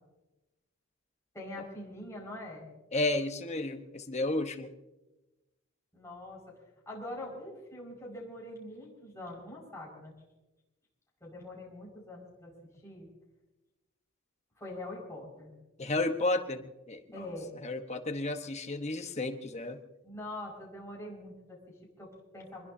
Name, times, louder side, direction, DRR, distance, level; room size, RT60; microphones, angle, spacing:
voice 1, 1.3-2.7 5.9-6.5 6.9-10.2 11.2-12.5 12.8-13.1 14.6-15.5 17.1-17.5 20.0-22.7, left 1 dB, 15° left, -3 dB, 5.3 m, -44 dB
voice 2, 2.9-4.7 15.8-17.2 17.6-19.8, left 2 dB, 35° left, 6 dB, 1.1 m, -32 dB
24.5 x 21.0 x 2.8 m, 1.0 s
head